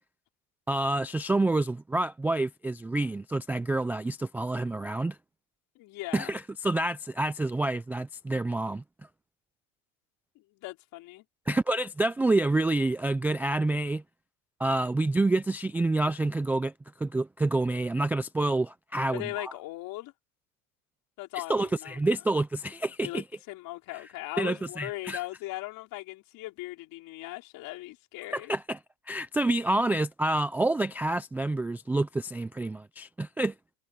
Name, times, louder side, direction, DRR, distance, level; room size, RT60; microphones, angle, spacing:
voice 1, 0.7-5.2 6.1-8.8 11.5-14.0 14.6-16.7 17.0-19.5 21.5-23.2 24.4-25.2 28.3-28.8 29.1-33.5, right 2 dB, 5° right, 0.3 m, -28 dB
voice 2, 5.7-6.3 10.3-11.2 19.1-20.1 21.2-22.0 22.9-28.5, left 19 dB, 55° left, 4.8 m, -39 dB
supercardioid pair, 125°, 41 cm